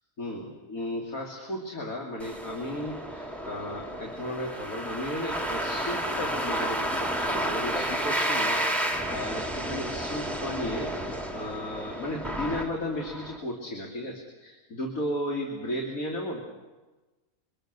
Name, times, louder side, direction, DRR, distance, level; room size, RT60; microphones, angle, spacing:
voice 1, 0.2-16.4, left 1 dB, 70° left, 0 dB, 3.2 m, -35 dB
sound 1, 2.2-13.4, right 1 dB, ahead, 2.3 m, -31 dB
26.5 x 25.0 x 6.7 m, 1.2 s
omnidirectional pair, 1.5 m